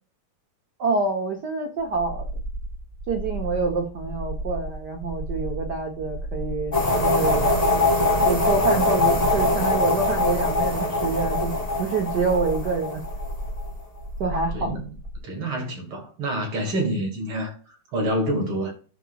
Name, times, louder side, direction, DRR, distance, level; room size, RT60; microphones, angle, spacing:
voice 1, 0.8-2.3 3.1-6.7 7.0-7.5 8.3-13.0 14.2-14.7, right 4 dB, 85° right, 0.9 m, -26 dB
sound 1, 1.8-15.2, equal, 5° right, 1.3 m, -34 dB
sound 2, 6.7-13.6, left 2 dB, 15° left, 1.6 m, -22 dB
voice 2, 14.5-14.9 15.2-18.7, right 1 dB, 45° right, 2.7 m, -27 dB
13.0 x 5.2 x 2.4 m
omnidirectional pair, 3.6 m